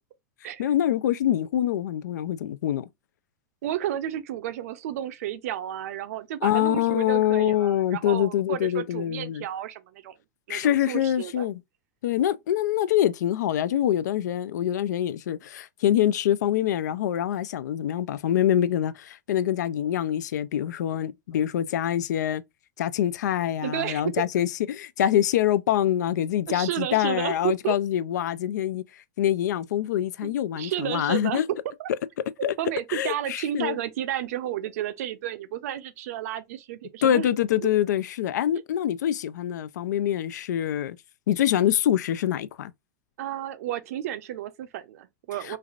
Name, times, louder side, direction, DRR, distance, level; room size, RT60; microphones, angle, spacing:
voice 1, 0.6-2.8 6.4-9.4 10.5-11.6 12.0-22.4 22.8-28.8 29.2-31.5 32.4-32.5 32.9-33.8 37.0-41.0 41.3-42.7 45.4-45.6, left 11 dB, 90° left, 0.4 m, -25 dB
voice 2, 3.6-10.1 10.5-11.5 23.6-24.2 26.5-27.8 30.2-31.9 32.4-37.3 37.6-37.7 43.2-45.6, right 11 dB, 60° right, 0.5 m, -32 dB
3.2 x 2.5 x 2.3 m
supercardioid pair, 160°, 9 cm